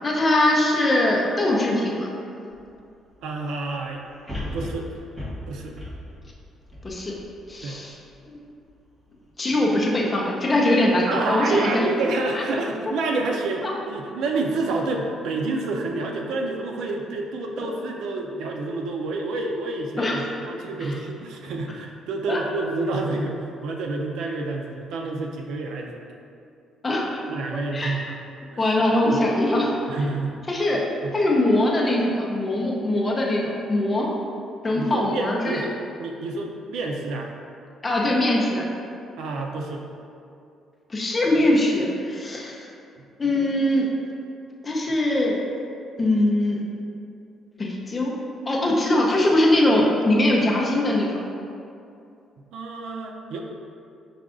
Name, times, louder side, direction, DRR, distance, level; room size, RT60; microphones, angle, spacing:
voice 1, 0.0-2.1 6.8-7.1 7.5-8.0 8.3-8.4 9.4-11.9 12.3-12.4 20.0-20.3 20.8-21.0 22.3-22.4 26.8-27.2 27.7-28.0 28.6-29.7 30.5-30.8 31.1-34.1 34.6-35.6 37.8-38.7 40.9-42.7 43.2-43.9 44.6-45.4 46.0-46.6 47.6-48.1 48.5-51.2, left 1 dB, 20° left, -3 dB, 0.5 m, -22 dB
sound 1, 2.5-2.6 4.3-7.6 8.1-8.2, left 1 dB, 15° right, 0.8 m, -35 dB
voice 2, 3.2-4.0 4.4-4.9 5.5-5.8 7.6-7.8 11.1-25.9 27.3-28.1 28.5-28.7 29.1-29.2 29.9-30.4 31.0-31.2 34.7-35.7 36.0-37.3 39.2-39.8 43.0-43.1 52.5-53.4, right 3 dB, 80° right, 1 dB, 0.4 m, -28 dB
4.9 x 2.3 x 3.6 m, 2.5 s
cardioid pair, 160°, 0 cm